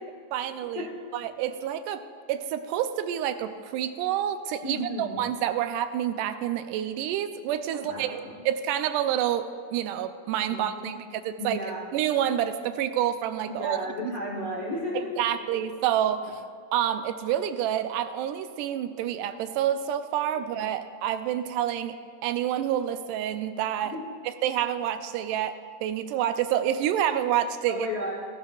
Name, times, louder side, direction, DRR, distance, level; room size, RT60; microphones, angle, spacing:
voice 1, 0.3-0.9 1.1-2.0 2.3-11.6 11.9-13.8 14.0-14.1 14.9-16.4 16.7-24.0 24.2-27.9, right 10 dB, 80° right, 10 dB, 2.1 m, -28 dB
voice 2, 4.6-5.2 7.8-8.3 10.5-10.9 11.4-11.9 13.6-15.4 23.9-24.0 27.7-28.1, left 1 dB, 55° left, -4 dB, 1.3 m, -33 dB
15.5 x 13.5 x 2.4 m, 2.3 s
omnidirectional pair, 3.8 m